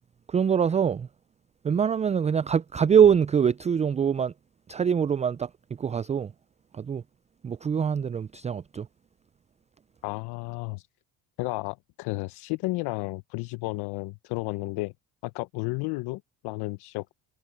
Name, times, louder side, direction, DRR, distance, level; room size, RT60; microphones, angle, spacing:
voice 1, 0.3-1.1 1.6-4.3 4.7-5.5 5.8-6.3 6.7-7.0 7.4-8.9, right 7 dB, 20° right, 0.3 m, -23 dB
voice 2, 10.0-10.9 11.4-14.9 15.2-17.1, left 23 dB, 75° left, 0.8 m, -32 dB
supercardioid pair, 75°, 40 cm